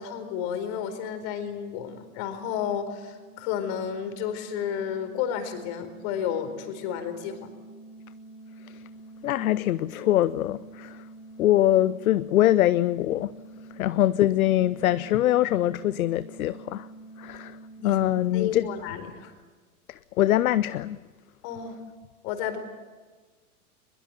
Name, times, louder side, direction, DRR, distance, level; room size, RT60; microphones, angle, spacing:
voice 1, 0.0-7.5 17.8-18.0 18.3-19.3 21.4-21.8 22.2-22.6, left 8 dB, 50° left, 4.6 m, -32 dB
sound 1, 1.4-18.9, right 2 dB, 25° left, 6.0 m, -47 dB
voice 2, 9.2-11.0 11.4-13.3 13.8-16.9 17.2-17.6 17.8-18.7 19.9-21.0, left 13 dB, 65° left, 0.8 m, -23 dB
23.5 x 21.5 x 9.1 m
hypercardioid pair, 100°, 45 cm